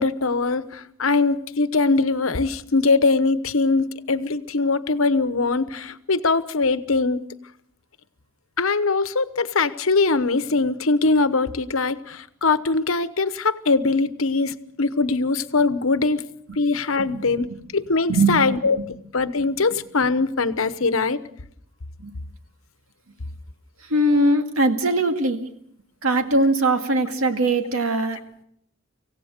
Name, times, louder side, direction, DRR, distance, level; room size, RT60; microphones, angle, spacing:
voice 1, 0.0-7.3 8.6-16.2 16.6-17.5 17.7-18.8 19.1-21.2, left 3 dB, 80° left, 13 dB, 1.0 m, -22 dB
voice 2, 17.1-17.6 18.1-18.9 22.0-22.1 23.9-25.5 26.0-28.2, right 2 dB, 90° right, 6 dB, 2.2 m, -21 dB
25.5 x 16.5 x 6.6 m, 0.69 s
head